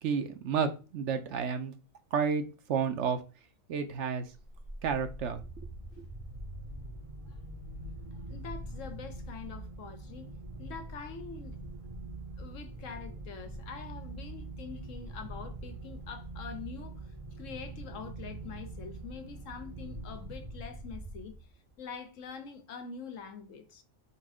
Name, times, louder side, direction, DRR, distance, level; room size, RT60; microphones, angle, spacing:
voice 1, 0.0-1.7 2.1-2.4 2.7-3.2 3.7-4.3 4.8-5.4 6.0-6.1, right 6 dB, 65° right, 0.9 m, -30 dB
sound 1, 4.3-21.7, right 2 dB, 30° right, 0.7 m, -43 dB
voice 2, 8.3-10.3 10.6-11.6 12.4-17.0 17.4-21.4 21.8-23.8, left 6 dB, 70° left, 1.1 m, -45 dB
4.1 x 2.6 x 4.8 m
omnidirectional pair, 1.4 m